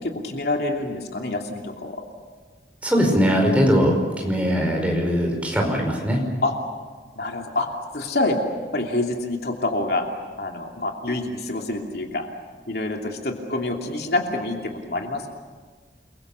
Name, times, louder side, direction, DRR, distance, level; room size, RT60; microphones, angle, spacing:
voice 1, 0.0-2.0 6.4-6.5 7.2-7.7 7.9-8.4 8.7-10.0 10.4-12.3 12.7-15.3, left 2 dB, 65° left, 1 dB, 2.9 m, -26 dB
voice 2, 2.8-6.2, equal, 10° right, 1 dB, 5.1 m, -20 dB
30.0 x 22.5 x 6.9 m, 1.5 s
head